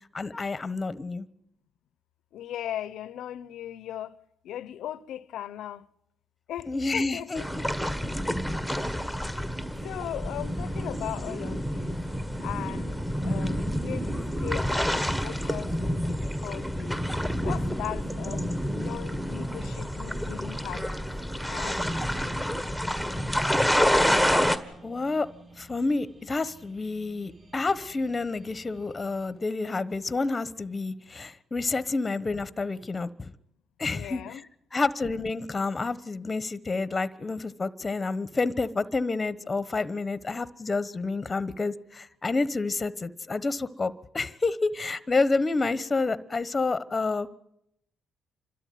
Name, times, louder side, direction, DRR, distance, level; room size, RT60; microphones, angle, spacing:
voice 1, 0.1-1.3 6.7-7.4 24.8-25.3 25.6-33.3 33.8-34.2 34.7-47.3, left 3 dB, 25° left, 1.1 m, -29 dB
voice 2, 2.3-4.2 4.4-5.9 6.5-7.5 8.9-12.0 12.4-12.9 13.2-17.0 17.4-21.8 33.9-34.5, left 11 dB, 80° left, 0.8 m, -38 dB
sound 1, 7.4-24.6, equal, 5° right, 1.6 m, -28 dB
sound 2, 9.4-29.3, right 3 dB, 45° right, 6.6 m, -54 dB
28.0 x 13.0 x 9.3 m
cardioid pair, 90°, 0 cm